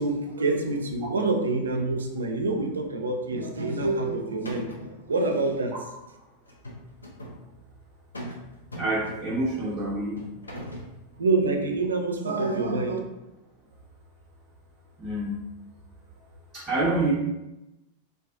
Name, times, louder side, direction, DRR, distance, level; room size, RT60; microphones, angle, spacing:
voice 1, 0.0-5.7 11.2-13.0, right 3 dB, 70° right, 3 dB, 0.3 m, -26 dB
sound 1, 4.0-4.1 4.4-5.0 6.5-7.4 8.1-8.4 8.7-9.5 10.2-10.9, equal, 80° left, 0.4 m, -39 dB
voice 2, 8.7-10.2 15.0-15.4 16.5-17.1, right 2 dB, 25° right, -7 dB, 0.6 m, -27 dB
2.3 x 2.3 x 2.4 m, 0.95 s
figure-of-eight pair, 90°, 0 cm